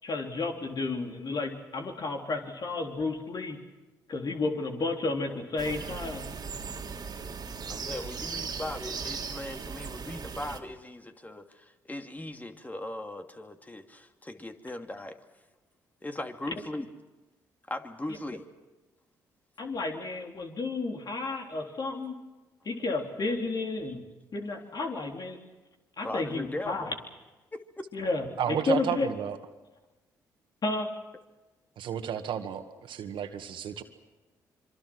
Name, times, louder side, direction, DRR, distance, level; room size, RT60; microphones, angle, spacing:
voice 1, 0.0-3.6 4.1-6.3 19.6-22.1 22.7-24.0 24.3-25.4 26.0-26.9 27.9-29.1 30.6-30.9, left 3 dB, 45° left, 2 dB, 3.8 m, -32 dB
voice 2, 5.3-5.8 7.7-15.2 16.0-16.9 17.7-18.4 23.9-24.0 26.0-26.9 27.5-27.9, left 1 dB, 20° left, 5 dB, 2.5 m, -39 dB
sound 1, 5.6-10.6, right 5 dB, 45° right, 2.6 m, -38 dB
voice 3, 28.4-29.4 31.8-33.8, right 9 dB, 65° right, 7 dB, 2.0 m, -32 dB
26.0 x 24.5 x 6.3 m, 1.1 s
hypercardioid pair, 50°, 9 cm